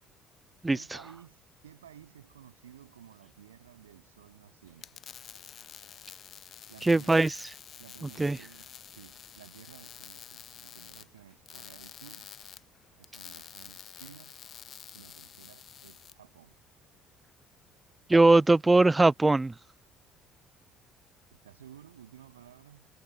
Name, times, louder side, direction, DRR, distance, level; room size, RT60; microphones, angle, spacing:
voice 1, 0.7-5.0 6.7-7.3 7.8-12.3 13.0-14.4 14.9-16.6 21.3-22.9, right 10 dB, 80° right, 7.1 m, -54 dB
sound 1, 4.7-16.1, left 9 dB, 45° left, 0.9 m, -49 dB
voice 2, 6.9-7.3 8.2-8.4 18.1-19.5, right 2 dB, 15° right, 0.3 m, -20 dB
figure-of-eight pair, 55°, 0 cm